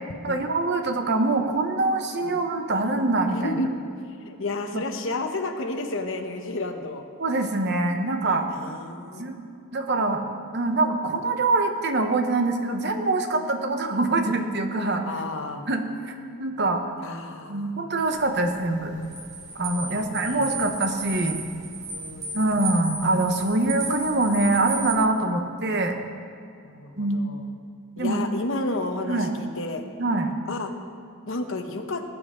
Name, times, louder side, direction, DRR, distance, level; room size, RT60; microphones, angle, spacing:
voice 1, 0.2-3.5 4.7-4.8 7.2-8.4 9.2-9.4 9.7-10.2 10.5-15.0 15.7-16.8 17.5-18.9 19.5-21.4 22.3-26.0 27.0-27.2 28.0-28.2 29.1-29.3 30.0-30.3, right 2 dB, 50° right, 5 dB, 1.0 m, -24 dB
voice 2, 3.3-3.7 4.2-7.0 8.2-9.5 15.1-15.6 17.0-17.9 19.9-20.7 21.9-22.7 26.6-27.5 28.0-29.8 30.5-30.7 31.3-32.0, left 2 dB, 60° left, 4 dB, 1.0 m, -32 dB
sound 1, 18.1-25.0, right 4 dB, 15° right, 2.5 m, -34 dB
20.0 x 9.0 x 3.8 m, 2.4 s
head